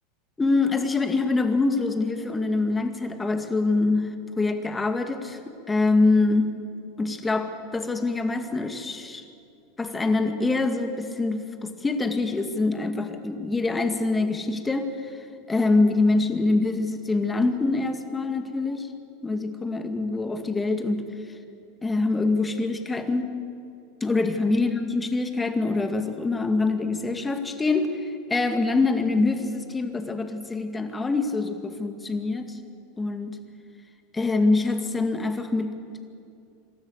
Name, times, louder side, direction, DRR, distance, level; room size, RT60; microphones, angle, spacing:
voice 1, 0.4-4.1 4.4-5.4 5.7-6.5 7.0-9.2 9.8-14.9 15.5-18.9 19.2-21.0 21.8-23.3 24.0-32.6 33.0-33.4 34.1-35.7, left 3 dB, 15° left, 6 dB, 2.2 m, -24 dB
26.0 x 13.0 x 8.2 m, 2.6 s
hypercardioid pair, 95°, 0 cm